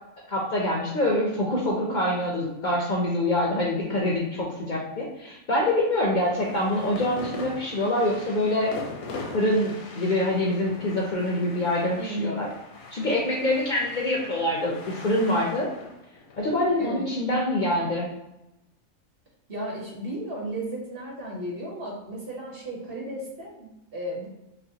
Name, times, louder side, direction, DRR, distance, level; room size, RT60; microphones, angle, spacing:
voice 1, 0.3-8.7 9.3-12.5 12.9-15.7 16.4-18.1, left 1 dB, 55° left, -3 dB, 0.5 m, -25 dB
sound 1, 6.2-17.7, left 3 dB, 80° left, 1.1 m, -41 dB
voice 2, 12.0-12.4 16.8-17.0 19.5-24.3, right 1 dB, 45° right, -3 dB, 1.2 m, -34 dB
5.2 x 2.1 x 2.8 m, 0.90 s
omnidirectional pair, 1.5 m